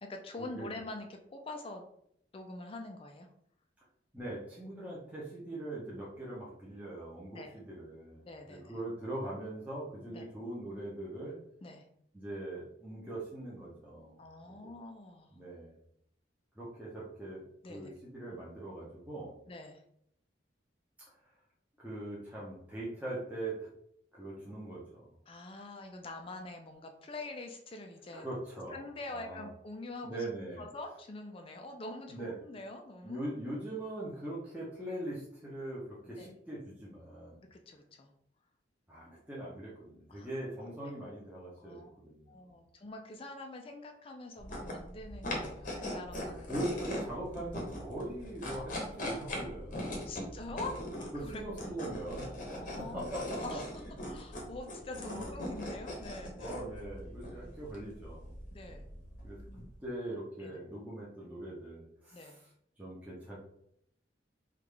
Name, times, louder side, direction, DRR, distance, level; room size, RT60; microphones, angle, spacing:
voice 1, 0.0-1.9 2.3-3.3 7.3-7.6 8.2-8.8 10.1-10.3 11.6-11.9 14.2-15.3 17.6-17.9 19.5-19.8 25.3-28.3 28.7-30.2 30.6-33.2 36.2-36.3 37.5-38.1 40.1-40.4 40.8-40.9 41.6-41.9 42.3-46.6 49.9-51.5 52.5-53.7 54.1-56.6 57.4-57.6 58.5-58.9 59.5-59.7 60.4-60.6 62.1-62.4, left 2 dB, 30° left, 5 dB, 0.4 m, -45 dB
voice 2, 4.1-8.2 8.7-11.4 12.1-14.2 14.4-14.5 15.3-15.7 16.6-17.4 17.7-19.3 21.8-23.7 24.1-25.0 28.1-28.8 29.1-29.5 30.0-30.6 32.1-32.4 33.0-37.4 38.9-42.5 46.5-50.0 50.5-50.6 51.1-53.6 55.1-55.6 56.4-58.4 58.7-58.8 59.2-59.4 59.8-62.3 62.8-63.4, right 1 dB, 10° right, -7 dB, 0.7 m, -41 dB
sound 1, 44.4-59.7, left 1 dB, 45° left, 0.8 m, -41 dB
3.5 x 2.4 x 3.2 m, 0.71 s
head